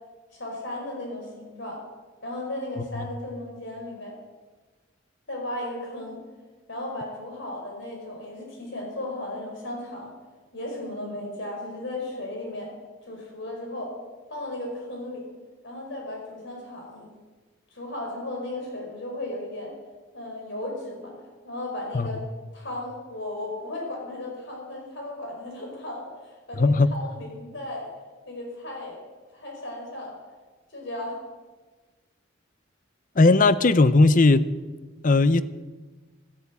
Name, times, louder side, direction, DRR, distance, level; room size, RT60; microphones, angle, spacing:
voice 1, 0.3-1.8 2.2-4.2 5.3-6.2 6.7-10.1 10.5-12.7 13.1-13.9 14.3-15.3 15.6-17.1 17.7-19.7 20.1-21.1 21.4-22.2 22.5-27.9 28.2-29.0 29.3-30.1 30.7-31.2, left 1 dB, 60° left, 5.0 m, -35 dB
voice 2, 26.5-26.9 33.2-34.4 35.0-35.4, left 3 dB, 40° left, 0.6 m, -17 dB
12.5 x 12.5 x 8.3 m
head